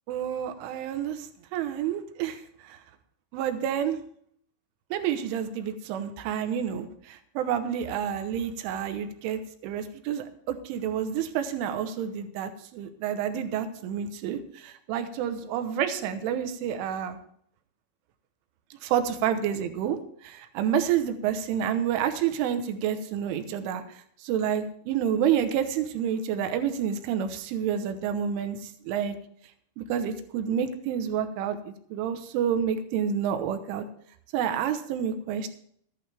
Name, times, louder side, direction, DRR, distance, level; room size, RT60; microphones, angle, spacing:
voice 1, 0.1-2.8 3.3-4.0 4.9-17.2 18.8-20.0 20.2-23.8 24.2-29.2 29.8-33.9 34.3-35.5, right 9 dB, 80° right, 8 dB, 3.5 m, -29 dB
14.5 x 11.0 x 3.5 m, 0.64 s
omnidirectional pair, 5.6 m